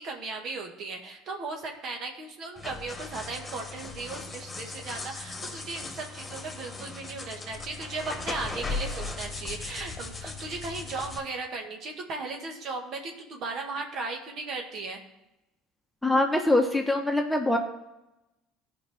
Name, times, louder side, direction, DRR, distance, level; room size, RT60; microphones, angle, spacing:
voice 1, 0.0-15.0, right 3 dB, 55° right, 2 dB, 1.9 m, -36 dB
sound 1, 2.6-11.2, left 3 dB, 20° left, 1.8 m, -38 dB
voice 2, 16.0-17.6, left 1 dB, ahead, 2 dB, 1.4 m, -23 dB
15.5 x 5.3 x 3.7 m, 0.93 s
hypercardioid pair, 75°, 0 cm